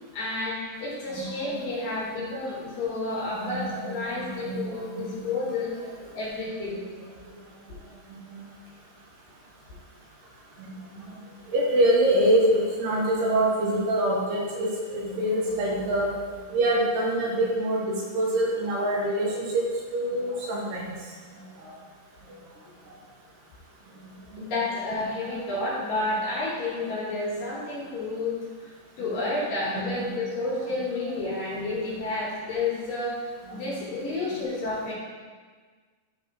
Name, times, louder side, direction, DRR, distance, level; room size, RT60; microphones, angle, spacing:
voice 1, 0.1-5.7 6.1-6.8 24.4-28.7 29.0-34.9, left 2 dB, 65° left, -7 dB, 2.8 m, -30 dB
voice 2, 1.1-1.5 3.3-5.0 8.3-8.4 10.6-10.7 11.5-16.1 16.5-19.6 19.9-20.9 21.6-21.7 29.0-29.1 29.7-29.9 33.5-33.7, right 1 dB, 75° right, -4 dB, 3.1 m, -25 dB
11.5 x 4.0 x 3.0 m, 1.5 s
omnidirectional pair, 5.0 m